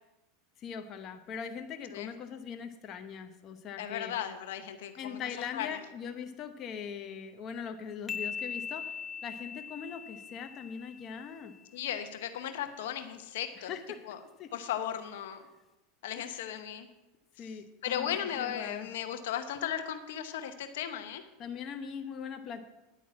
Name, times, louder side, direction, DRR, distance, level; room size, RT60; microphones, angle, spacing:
voice 1, 0.6-4.1 5.0-8.9 9.2-11.5 13.6-14.0 14.4-14.5 16.1-16.4 17.4-18.1 18.4-18.9 21.4-22.6, left 7 dB, 40° left, 6 dB, 1.0 m, -41 dB
voice 2, 3.8-5.2 5.5-5.8 11.7-13.7 14.0-14.2 14.5-15.4 16.0-16.9 17.4-17.5 17.8-21.2, left 10 dB, 80° left, 8 dB, 1.0 m, -36 dB
sound 1, 8.1-11.6, left 6 dB, 20° left, 0.4 m, -40 dB
10.5 x 5.4 x 8.5 m, 1.0 s
supercardioid pair, 120°, 0 cm